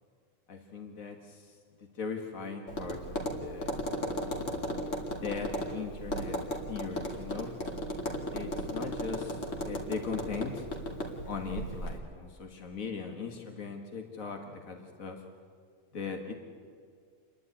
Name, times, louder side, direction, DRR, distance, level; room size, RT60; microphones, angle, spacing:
voice 1, 0.5-3.8 5.1-6.4 6.7-7.5 8.3-10.7 11.3-15.2 15.9-16.3, left 5 dB, 90° left, 3 dB, 1.9 m, -39 dB
Tap, 2.7-12.0, equal, 65° left, 2.6 m, -36 dB
28.0 x 11.5 x 9.6 m, 2.1 s
omnidirectional pair, 1.4 m